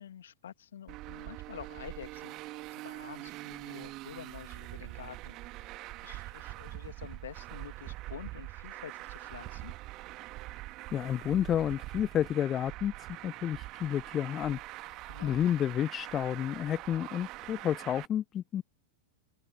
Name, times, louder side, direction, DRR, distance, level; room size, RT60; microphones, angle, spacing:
voice 1, 0.0-5.7 6.0-9.7 15.1-15.4, left 10 dB, 65° left, 2.4 m, -48 dB
Traffic noise roadway noise, 0.9-18.1, right 19 dB, 40° right, 1.7 m, -44 dB
voice 2, 10.9-12.9 13.2-14.6 14.8-15.0 15.2-18.6, left 10 dB, 30° left, 0.7 m, -30 dB
open air
figure-of-eight pair, 90°, 0 cm